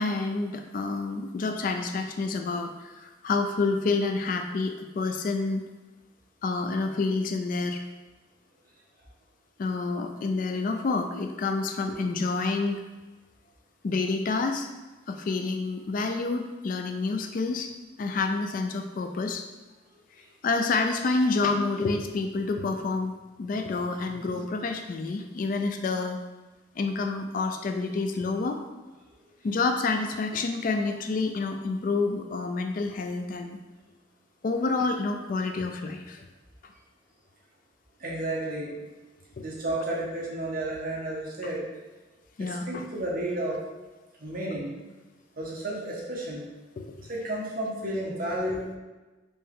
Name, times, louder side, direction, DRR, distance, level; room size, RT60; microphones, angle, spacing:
voice 1, 0.0-5.6 6.4-7.8 9.6-12.8 13.8-14.7 15.1-17.7 18.0-19.5 20.4-23.1 23.4-26.2 26.8-28.6 29.4-33.6 34.4-36.3 39.4-39.5 42.4-42.8 46.8-47.1, left 3 dB, 45° left, 5 dB, 0.3 m, -28 dB
voice 2, 38.0-38.7 39.4-41.7 42.4-43.6 44.2-44.7 45.4-46.5 47.1-48.6, right 1 dB, 50° right, -4 dB, 1.1 m, -32 dB
4.4 x 3.2 x 3.6 m, 1.2 s
head